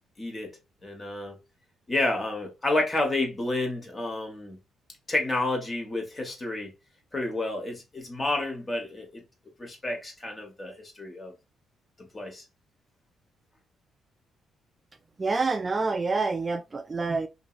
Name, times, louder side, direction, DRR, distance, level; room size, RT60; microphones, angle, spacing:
voice 1, 0.2-0.5 0.8-1.4 1.9-4.6 5.1-6.7 7.1-9.2 9.6-11.3 12.0-12.4, left 2 dB, 25° left, 1.3 m, -30 dB
voice 2, 15.2-17.3, right 3 dB, 30° right, 0.3 m, -27 dB
2.9 x 2.6 x 2.4 m
cardioid pair, 90°, 0 cm